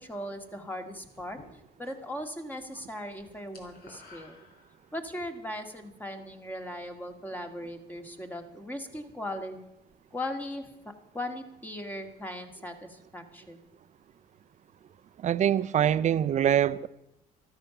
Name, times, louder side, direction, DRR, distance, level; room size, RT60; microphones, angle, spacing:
voice 1, 0.0-1.4 1.8-4.4 4.9-9.6 10.1-10.7 11.1-13.7, left 1 dB, 10° left, 2.0 m, -38 dB
sound 1, 1.1-2.1 2.4-2.8 3.0-5.1, left 3 dB, 65° left, 4.5 m, -53 dB
voice 2, 15.2-16.9, right 10 dB, 45° right, 0.6 m, -24 dB
13.5 x 13.0 x 6.0 m
cardioid pair, 110°, 17 cm